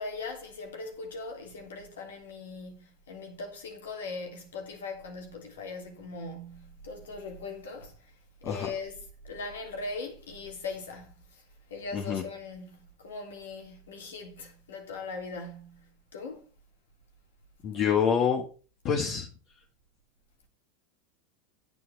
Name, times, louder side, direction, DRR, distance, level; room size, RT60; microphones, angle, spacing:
voice 1, 0.0-8.1 8.4-9.0 9.2-11.4 11.7-16.4, left 3 dB, 80° left, 3.2 m, -40 dB
voice 2, 11.9-12.2 17.6-18.4 18.8-19.3, left 7 dB, 45° left, 1.8 m, -26 dB
9.2 x 8.6 x 4.7 m
hypercardioid pair, 95°, 0 cm